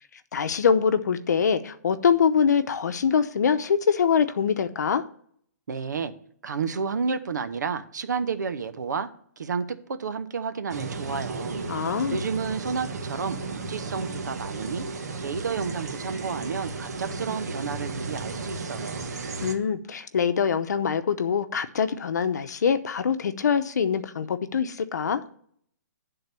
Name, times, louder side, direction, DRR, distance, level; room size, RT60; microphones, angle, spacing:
voice 1, 0.3-5.0 11.7-12.2 19.4-25.2, left 6 dB, 75° left, 0.8 m, -24 dB
voice 2, 5.7-6.1 6.4-9.1 9.4-11.6 12.1-14.9 15.2-19.1, right 5 dB, 90° right, 0.9 m, -31 dB
sound 1, 10.7-19.5, right 4 dB, 65° right, 1.4 m, -34 dB
10.5 x 3.9 x 6.7 m
hypercardioid pair, 165°, 9 cm